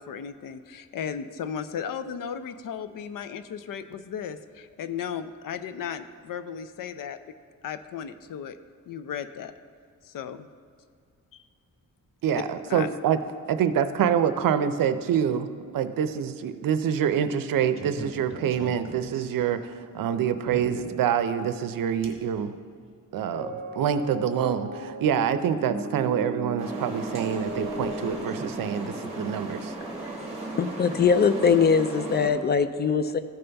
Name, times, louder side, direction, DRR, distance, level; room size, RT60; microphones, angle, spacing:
voice 1, 0.0-7.2 7.6-8.6 8.9-9.5 10.0-10.5 11.3-11.4 12.7-12.9, left 7 dB, 80° left, 11 dB, 0.5 m, -35 dB
voice 2, 12.2-13.2 13.5-15.5 15.7-22.6 23.1-29.7, right 8 dB, 85° right, 11 dB, 0.6 m, -26 dB
sound 1, 17.6-19.4 20.4-21.0 22.0-22.5 22.8-22.9 23.3-28.5, right 1 dB, 40° right, 1.2 m, -37 dB
sound 2, 26.6-32.3, right 2 dB, 20° right, 1.7 m, -36 dB
voice 3, 30.6-33.2, left 6 dB, 30° left, 11 dB, 0.4 m, -21 dB
14.5 x 5.4 x 3.4 m, 2.2 s
wide cardioid pair, 150°, 33 cm